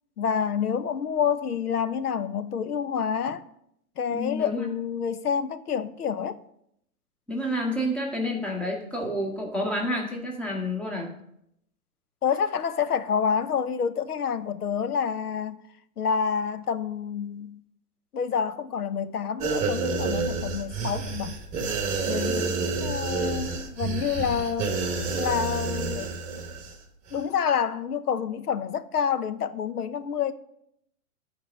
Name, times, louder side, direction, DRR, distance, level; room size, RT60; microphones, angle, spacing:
voice 1, 0.2-3.5 4.0-6.4 12.2-15.6 16.0-17.6 18.1-21.4 22.1-24.8 25.2-26.1 27.1-30.3, left 7 dB, 90° left, 0.9 m, -28 dB
voice 2, 4.1-4.6 7.3-11.1 22.4-22.7, equal, 5° left, 1.4 m, -29 dB
sound 1, 19.4-26.8 27.1-27.2, right 4 dB, 15° right, 1.4 m, -29 dB
12.0 x 4.7 x 6.3 m
hypercardioid pair, 140°, 44 cm